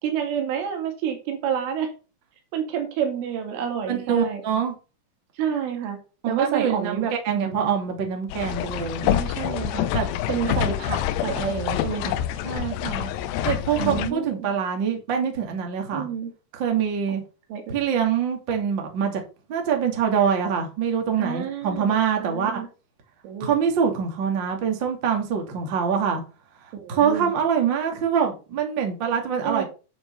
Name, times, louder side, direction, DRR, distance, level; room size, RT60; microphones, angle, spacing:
voice 1, 0.0-1.9 2.5-4.4 5.4-6.0 6.3-7.8 9.0-9.9 10.3-12.2 13.8-14.5 15.9-16.3 17.5-17.8 21.2-22.7 23.2-23.5 26.7-27.3 29.4-29.7, right 8 dB, 80° right, 4.6 m, -29 dB
voice 2, 3.9-4.7 6.2-9.0 9.9-10.1 12.4-13.1 13.4-16.1 16.5-17.2 17.7-19.2 19.5-22.6 23.4-26.2 26.9-29.6, right 7 dB, 35° right, 2.1 m, -24 dB
sound 1, 8.3-14.1, left 12 dB, 80° left, 2.5 m, -27 dB
9.5 x 7.2 x 5.5 m
omnidirectional pair, 5.6 m